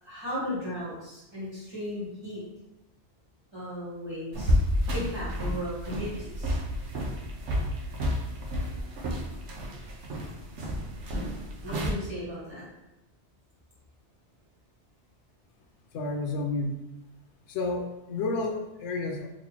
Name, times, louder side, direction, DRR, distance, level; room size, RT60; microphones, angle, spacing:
voice 1, 0.0-2.4 3.5-4.6 4.9-6.6 11.6-12.6, equal, 25° right, -9 dB, 1.4 m, -36 dB
sound 1, 4.3-11.9, equal, 80° right, 1.0 m, -30 dB
voice 2, 15.9-16.8 17.5-19.3, left 3 dB, 80° left, 3 dB, 0.9 m, -31 dB
4.2 x 2.6 x 2.8 m, 0.93 s
omnidirectional pair, 1.2 m